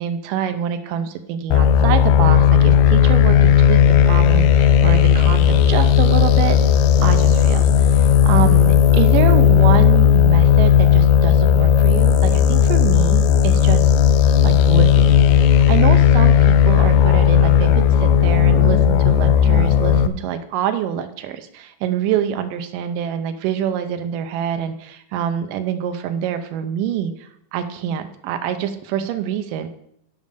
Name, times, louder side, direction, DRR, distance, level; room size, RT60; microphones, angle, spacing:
voice 1, 0.0-3.8 4.1-6.6 7.0-13.9 14.4-29.7, right 9 dB, 85° right, 8 dB, 2.3 m, -25 dB
sound 1, 1.5-20.1, left 8 dB, 85° left, 2.2 m, -14 dB
7.4 x 5.1 x 6.7 m, 0.74 s
omnidirectional pair, 3.8 m